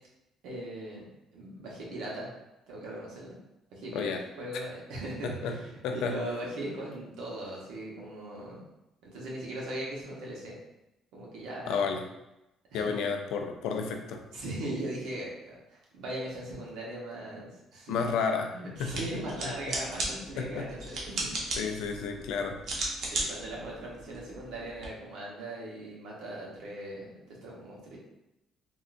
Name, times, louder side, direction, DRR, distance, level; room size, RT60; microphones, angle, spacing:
voice 1, 0.4-1.1 1.3-2.3 2.7-3.3 3.7-4.1 4.4-8.6 9.0-10.5 11.1-11.9 12.7-13.0 14.3-18.0 18.5-21.3 21.8-22.0 23.0-28.0, right 1 dB, 80° right, -3 dB, 1.0 m, -39 dB
voice 2, 5.2-5.5 5.8-6.2 11.7-12.0 12.7-14.2 17.9-18.5 18.8-19.0 19.4-19.7 20.4-20.7 21.6-22.6, left 5 dB, 80° left, 4 dB, 0.4 m, -31 dB
sound 1, 18.8-24.9, right 2 dB, 60° right, 0.7 m, -37 dB
3.6 x 2.4 x 2.5 m, 0.91 s
cardioid pair, 150°, 0 cm